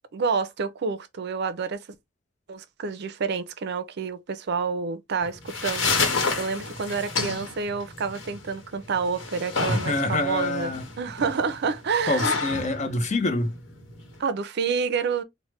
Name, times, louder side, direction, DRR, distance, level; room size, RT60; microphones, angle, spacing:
voice 1, 0.1-1.8 2.5-12.3 14.2-15.2, right 5 dB, 60° right, 0.4 m, -28 dB
sound 1, 5.2-14.2, left 4 dB, 75° left, 1.0 m, -30 dB
voice 2, 9.7-10.8 12.1-13.6, left 2 dB, 40° left, 0.6 m, -26 dB
3.2 x 2.1 x 3.0 m
head